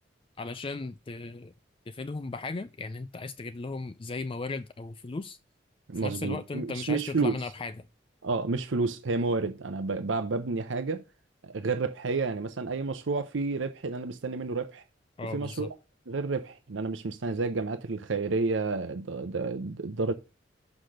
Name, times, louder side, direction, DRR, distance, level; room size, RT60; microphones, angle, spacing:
voice 1, 0.4-1.5 1.9-5.4 6.0-7.8 15.2-15.7, left 3 dB, 30° left, 0.4 m, -36 dB
voice 2, 5.9-7.4 8.2-11.0 11.4-14.8 15.3-15.7 16.1-20.1, right 3 dB, 90° right, 0.7 m, -30 dB
6.0 x 4.9 x 6.4 m
head